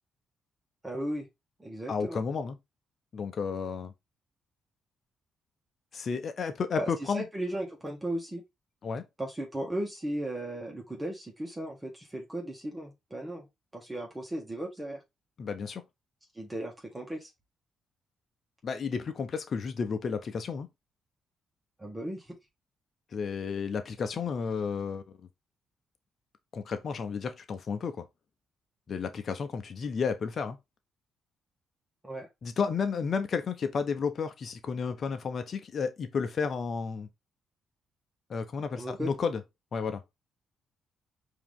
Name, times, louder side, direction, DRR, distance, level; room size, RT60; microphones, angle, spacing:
voice 1, 0.8-1.3 1.6-2.2 6.8-8.4 9.2-13.5 13.7-15.0 16.3-17.3 21.8-22.4 32.0-32.3 38.7-39.1, right 1 dB, 15° right, 1.6 m, -36 dB
voice 2, 1.9-2.6 3.1-3.9 5.9-7.3 8.8-9.0 15.4-15.8 18.6-20.7 23.1-25.0 26.5-28.0 28.9-30.6 32.4-37.1 38.3-39.4 39.7-40.0, left 5 dB, 50° left, 0.9 m, -32 dB
4.7 x 3.0 x 3.7 m
cardioid pair, 90°, 0 cm